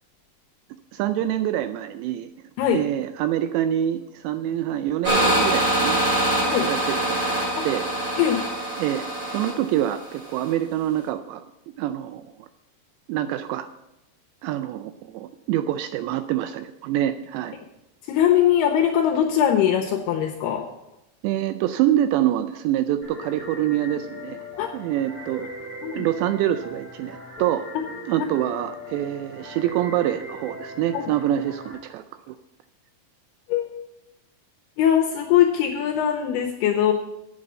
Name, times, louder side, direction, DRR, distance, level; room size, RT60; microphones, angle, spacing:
voice 1, 0.9-2.3 2.7-6.0 6.6-7.9 8.8-11.4 11.8-12.5 13.1-13.7 14.4-17.6 21.2-24.4 24.7-25.5 25.9-27.7 28.1-32.4, right 12 dB, 85° right, 10 dB, 2.6 m, -26 dB
sound 1, 5.0-10.5, right 1 dB, 30° right, 3.0 m, -24 dB
voice 2, 18.1-20.6 24.6-24.7 25.8-26.0 30.9-31.1 33.5-33.8 34.8-36.9, left 10 dB, 80° left, 3 dB, 2.4 m, -21 dB
sound 2, 23.0-31.8, left 1 dB, ahead, 3.4 m, -39 dB
8.1 x 7.7 x 7.3 m, 0.90 s
omnidirectional pair, 5.4 m